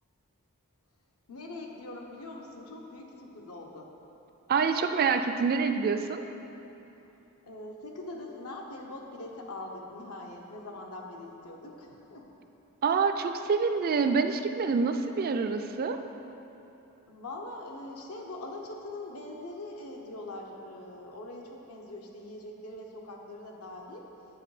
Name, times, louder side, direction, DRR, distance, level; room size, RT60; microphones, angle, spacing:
voice 1, 1.3-3.9 7.4-12.3 17.1-24.0, left 2 dB, 80° left, 0 dB, 1.0 m, -42 dB
voice 2, 4.5-6.2 12.8-16.0, right 5 dB, 45° right, 8 dB, 0.3 m, -26 dB
7.7 x 5.9 x 4.9 m, 3.0 s
head